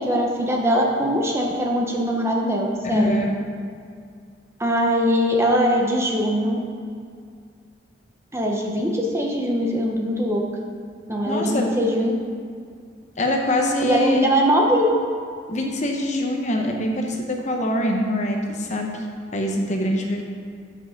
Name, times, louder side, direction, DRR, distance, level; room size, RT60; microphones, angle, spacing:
voice 1, 0.0-3.1 4.6-6.6 8.3-10.4 11.1-12.1 13.8-15.0, equal, 15° right, -1 dB, 0.8 m, -21 dB
voice 2, 2.8-3.3 11.3-11.7 13.2-14.3 15.5-18.9 19.3-20.2, left 1 dB, 40° left, 2 dB, 0.9 m, -23 dB
8.0 x 5.5 x 5.8 m, 2.2 s
head